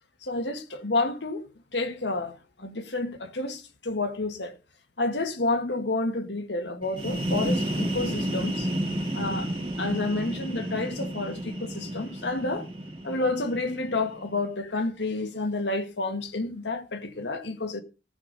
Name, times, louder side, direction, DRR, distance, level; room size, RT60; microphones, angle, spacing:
voice 1, 0.2-1.4 1.7-4.6 5.0-8.7 9.1-9.5 9.8-12.6 13.0-17.8, left 2 dB, 90° left, 1.8 m, -30 dB
sound 1, 6.8-14.4, right 1 dB, 30° right, 2.0 m, -31 dB
18.5 x 6.8 x 4.1 m
head